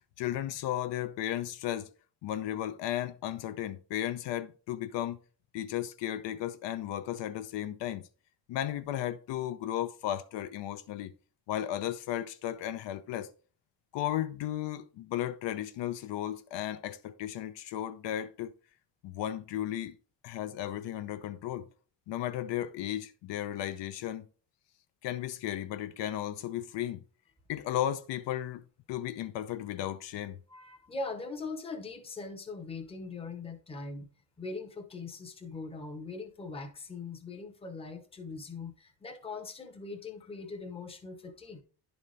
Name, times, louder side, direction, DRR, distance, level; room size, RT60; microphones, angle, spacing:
voice 1, 0.2-1.9 2.2-5.2 5.5-8.0 8.5-11.1 11.5-13.3 13.9-18.5 19.0-19.9 20.2-21.7 22.1-24.3 25.0-27.0 27.5-28.6 28.9-30.4, left 12 dB, 80° left, 0.7 m, -34 dB
voice 2, 30.5-34.1 34.4-41.6, left 3 dB, 15° left, 0.7 m, -41 dB
11.0 x 4.1 x 3.2 m
cardioid pair, 175°, 43 cm